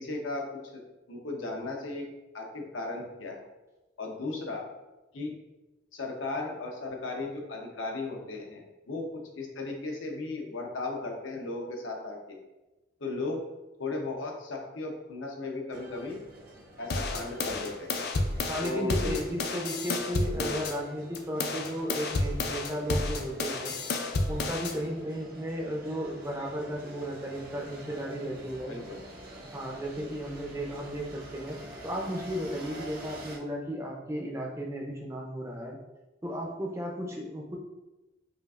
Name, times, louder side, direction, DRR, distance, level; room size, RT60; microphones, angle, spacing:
voice 1, 0.0-2.1 2.3-3.4 4.0-4.7 5.1-5.3 5.9-12.4 13.0-13.4 13.8-16.2 16.8-17.9 18.6-19.1 20.3-20.6 28.7-29.0 29.9-30.1 37.1-37.2, left 3 dB, 85° left, 1 dB, 0.7 m, -36 dB
sound 1, 15.7-33.4, equal, 50° right, 0.8 m, -47 dB
sound 2, 16.9-20.8 21.2-24.8, left 3 dB, 55° left, 0.4 m, -31 dB
voice 2, 18.5-23.7 24.3-28.8 29.5-31.6 31.8-35.8 36.2-37.6, equal, 15° right, -1 dB, 0.4 m, -34 dB
5.0 x 2.4 x 2.4 m, 1.1 s
head